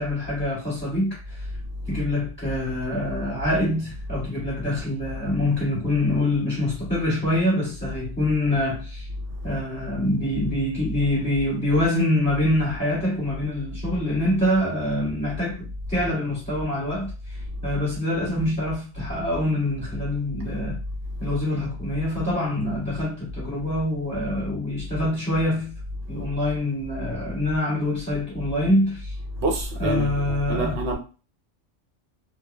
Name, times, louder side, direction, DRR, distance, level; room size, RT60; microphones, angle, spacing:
voice 1, 0.0-1.4 1.9-9.1 9.4-17.1 17.6-20.8 21.2-25.7 26.1-29.1 29.8-31.0, left 1 dB, 10° left, 1.1 m, -25 dB
voice 2, 29.4-31.0, right 2 dB, 70° right, 1.0 m, -26 dB
2.2 x 2.1 x 2.6 m
omnidirectional pair, 1.2 m